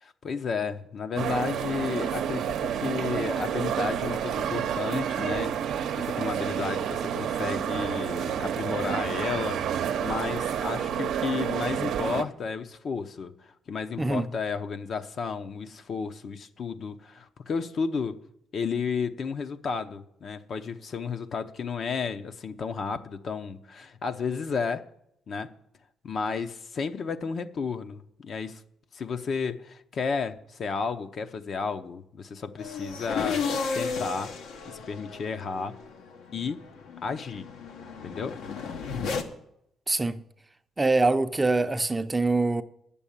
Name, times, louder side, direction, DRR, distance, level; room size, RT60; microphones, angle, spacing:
voice 1, 0.0-5.5 5.9-18.2 18.5-24.8 25.3-25.5 26.0-28.6 28.9-33.5 33.7-34.3 34.6-35.7 36.3-36.6 37.0-37.5 38.0-38.4, left 5 dB, 55° left, 0.8 m, -32 dB
sound 1, 1.2-12.2, right 8 dB, 75° right, 0.7 m, -29 dB
sound 2, 32.6-39.2, left 5 dB, 85° left, 1.1 m, -34 dB
voice 2, 39.9-40.2 40.8-42.6, right 3 dB, 20° right, 0.6 m, -24 dB
9.1 x 7.0 x 8.7 m
cardioid pair, 90°, 0 cm